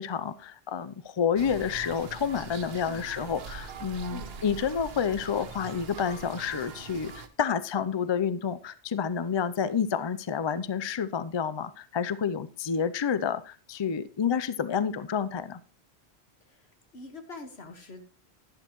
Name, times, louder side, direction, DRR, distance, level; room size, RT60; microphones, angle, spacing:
voice 1, 0.0-15.6, left 7 dB, 40° left, 13 dB, 0.4 m, -29 dB
sound 1, 1.4-7.3, right 5 dB, 70° right, 1.1 m, -42 dB
voice 2, 16.9-18.0, left 2 dB, 75° left, 6 dB, 1.8 m, -44 dB
11.5 x 11.0 x 3.0 m, 0.36 s
omnidirectional pair, 1.1 m